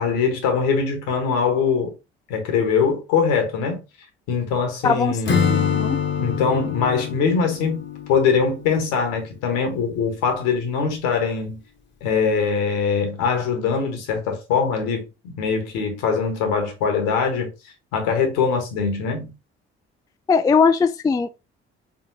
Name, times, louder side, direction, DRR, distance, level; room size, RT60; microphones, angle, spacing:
voice 1, 0.0-1.9 2.3-3.8 4.3-5.4 6.1-7.8 8.1-11.6 12.0-17.5 17.9-19.3, left 5 dB, 70° left, 1.5 m, -22 dB
voice 2, 4.8-6.0 20.3-21.3, left 5 dB, 10° left, 0.3 m, -20 dB
Acoustic guitar / Strum, 5.2-9.2, left 7 dB, 35° left, 1.1 m, -25 dB
4.3 x 3.6 x 2.8 m
hypercardioid pair, 50°, 32 cm